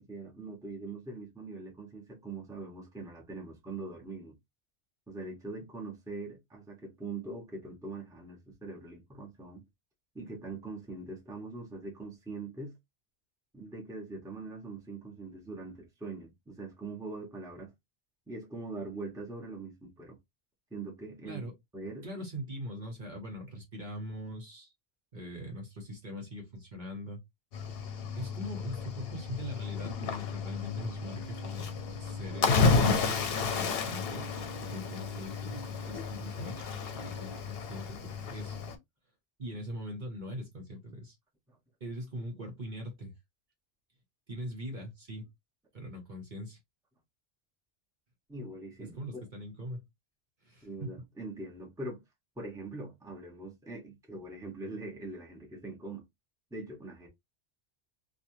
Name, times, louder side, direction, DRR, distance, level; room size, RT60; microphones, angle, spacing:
voice 1, 0.0-4.4 5.1-9.6 10.1-12.7 13.5-17.7 18.3-20.2 20.7-21.4 21.7-22.1 48.3-49.0 50.6-52.0 52.4-56.0 56.5-57.1, right 3 dB, 5° right, 0.9 m, -42 dB
voice 2, 22.0-24.7 25.1-27.2 28.2-32.6 32.9-36.7 36.9-38.6 39.4-41.2 41.8-43.1 44.3-45.3 45.7-46.6 48.8-49.9 50.4-51.0, equal, 45° right, 1.0 m, -42 dB
Cricket / Waves surf, 27.5-38.8, left 4 dB, 60° left, 0.8 m, -32 dB
3.1 x 2.4 x 2.7 m
omnidirectional pair, 1.2 m